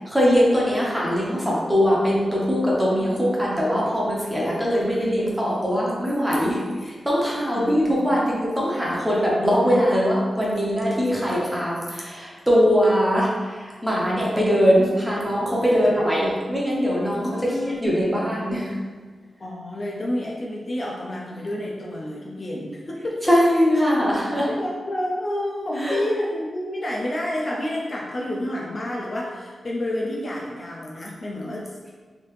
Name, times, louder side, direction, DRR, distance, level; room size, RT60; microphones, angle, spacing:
voice 1, 0.1-6.6 6.8-17.3 17.8-18.7 23.3-24.5 25.8-26.0, equal, 10° right, -5 dB, 0.7 m, -21 dB
voice 2, 3.0-3.3 7.5-8.2 9.1-9.3 9.6-9.7 15.7-15.9 17.2-17.9 19.4-23.2 24.5-31.9, left 1 dB, 35° left, -3 dB, 0.4 m, -29 dB
3.2 x 2.8 x 3.1 m, 1.5 s
wide cardioid pair, 150°, 0 cm